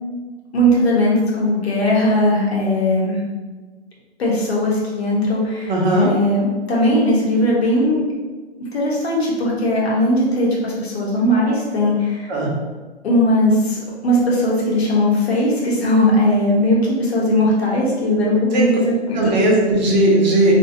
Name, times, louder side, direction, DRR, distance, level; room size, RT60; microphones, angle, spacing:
voice 1, 0.5-3.2 4.2-8.0 8.7-12.3 13.0-19.3, left 1 dB, 65° left, -4 dB, 1.1 m, -18 dB
voice 2, 5.7-6.1 12.3-12.5 18.5-18.7 19.1-20.5, right 1 dB, 40° right, -3 dB, 0.7 m, -17 dB
2.6 x 2.3 x 2.7 m, 1.3 s
hypercardioid pair, 150°, 33 cm